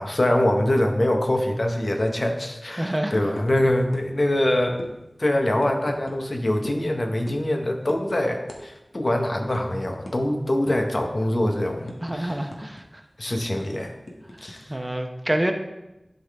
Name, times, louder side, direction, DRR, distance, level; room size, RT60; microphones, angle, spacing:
voice 1, 0.0-4.8 5.2-12.4 13.2-13.9 14.4-14.7, left 1 dB, 55° left, 4 dB, 0.9 m, -24 dB
voice 2, 2.8-3.1 12.0-12.8 14.7-15.5, right 1 dB, 25° right, 4 dB, 0.7 m, -26 dB
sound 1, 3.4-3.6 3.9-4.1 4.3-4.5 4.8-4.9 5.6-6.2 6.6-6.8 7.3-7.5 7.9-8.1 8.5-8.6 8.9-9.1 9.5-9.6 10.1-10.2 10.7-10.9 11.3-12.8 13.1-13.2 13.6-14.6, left 1 dB, 75° left, 1.1 m, -39 dB
11.5 x 3.9 x 3.4 m, 0.95 s
wide cardioid pair, 55°, 0 cm